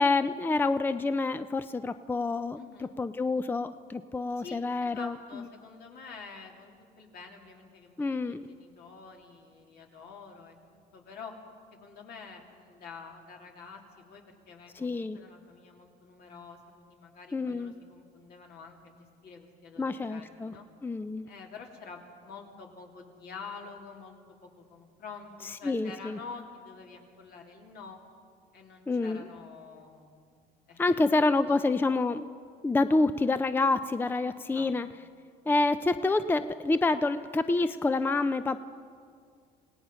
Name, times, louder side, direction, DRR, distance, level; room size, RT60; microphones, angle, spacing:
voice 1, 0.0-2.6 3.0-5.2 8.0-8.4 14.8-15.2 17.3-17.7 19.8-20.5 20.8-21.3 25.6-26.2 28.9-29.2 30.8-32.2 32.6-34.9 35.5-38.6, left 3 dB, 10° left, 12 dB, 0.5 m, -27 dB
voice 2, 2.6-2.9 4.4-10.5 10.9-11.3 11.7-20.6 21.2-28.0 28.5-30.2 30.7-31.2 31.5-31.7 34.5-34.8, left 5 dB, 70° left, 1 dB, 3.0 m, -48 dB
27.0 x 17.5 x 5.7 m, 2.2 s
cardioid pair, 110°, 17 cm